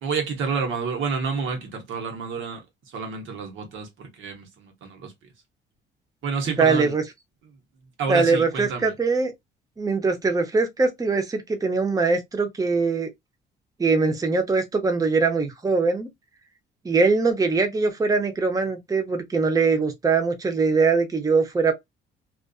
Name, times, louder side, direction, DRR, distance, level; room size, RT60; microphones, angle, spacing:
voice 1, 0.0-5.1 6.2-6.9 8.0-8.9, right 5 dB, 75° right, 1.0 m, -29 dB
voice 2, 6.5-7.0 8.1-9.3 9.8-13.1 13.8-16.1 16.8-21.7, right 4 dB, 20° right, 0.6 m, -22 dB
2.4 x 2.4 x 2.3 m
cardioid pair, 90°, 20 cm